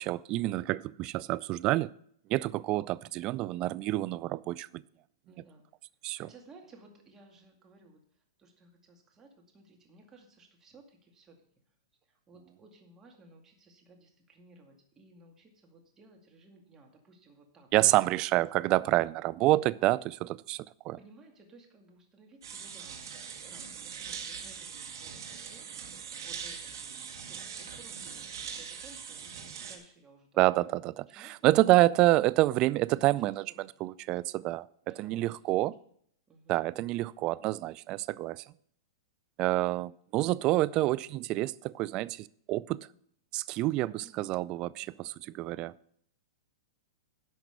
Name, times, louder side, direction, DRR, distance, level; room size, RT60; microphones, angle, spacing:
voice 1, 0.0-1.9 2.3-4.8 6.0-6.3 17.7-21.0 30.4-33.4 33.8-34.7 35.0-35.7 36.5-38.4 39.4-42.8 43.3-45.7, right 17 dB, 35° right, 0.4 m, -28 dB
voice 2, 5.3-5.6 6.2-11.4 12.1-18.2 21.0-25.7 26.2-30.7 31.1-31.8 32.9-33.9 34.9-35.3 36.3-36.6 43.8-45.5, right 3 dB, 20° right, 2.3 m, -57 dB
sound 1, 22.4-29.8, right 7 dB, 70° right, 1.8 m, -42 dB
11.0 x 5.9 x 6.7 m
hypercardioid pair, 120°, 2 cm